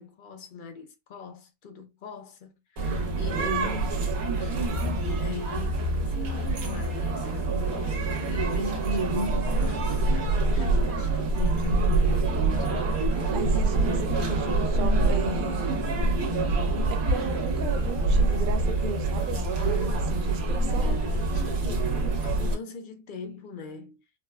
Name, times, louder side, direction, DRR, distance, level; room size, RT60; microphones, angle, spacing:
voice 1, 0.0-3.8 4.4-4.6 5.0-8.0 8.3-12.7 20.5-24.0, left 5 dB, 60° left, 0.5 m, -42 dB
sound 1, 2.8-22.5, right 2 dB, 85° right, 1.4 m, -25 dB
voice 2, 3.3-3.9 13.3-15.8 16.9-21.0, right 4 dB, 60° right, 0.5 m, -36 dB
4.0 x 2.1 x 2.2 m
omnidirectional pair, 1.5 m